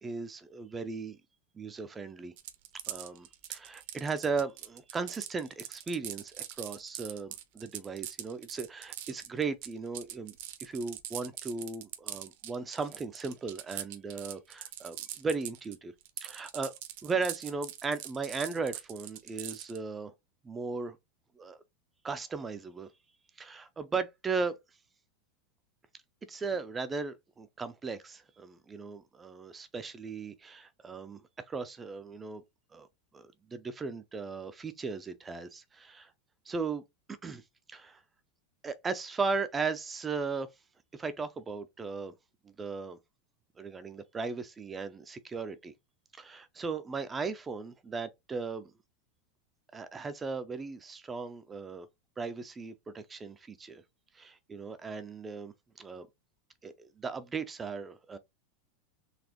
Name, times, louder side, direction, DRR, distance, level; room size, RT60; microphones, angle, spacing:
voice 1, 0.0-1.2 1.6-2.3 2.9-10.3 10.6-15.9 16.2-16.7 17.0-20.1 20.4-21.0 21.4-21.6 22.0-22.9 23.4-24.5 26.3-31.2 31.5-32.4 32.7-32.9 33.1-36.1 36.5-36.8 37.2-37.4 37.7-38.0 38.6-40.5 40.9-42.1 42.4-43.0 43.6-45.7 46.2-48.7 49.7-51.9 52.2-53.8 54.1-56.1 56.6-58.2, right 4 dB, 15° right, 0.4 m, -37 dB
sound 1, 2.4-15.8 16.0-19.8, right 13 dB, 60° right, 0.7 m, -42 dB
4.1 x 2.9 x 2.9 m
supercardioid pair, 160°, 0 cm